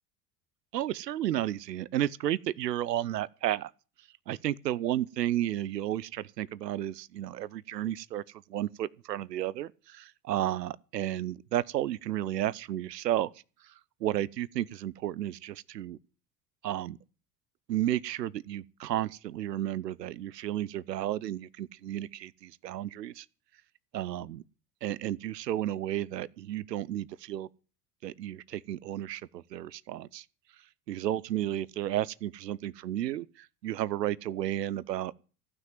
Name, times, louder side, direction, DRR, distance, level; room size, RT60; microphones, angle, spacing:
voice 1, 0.7-3.7 4.3-8.2 8.5-13.3 13.7-13.8 14.0-16.0 16.6-17.0 17.7-23.3 23.9-24.4 24.8-27.5 28.0-30.2 30.9-35.1, right 12 dB, 85° right, 0.6 m, -32 dB
15.0 x 6.1 x 9.2 m
hypercardioid pair, 70°, 48 cm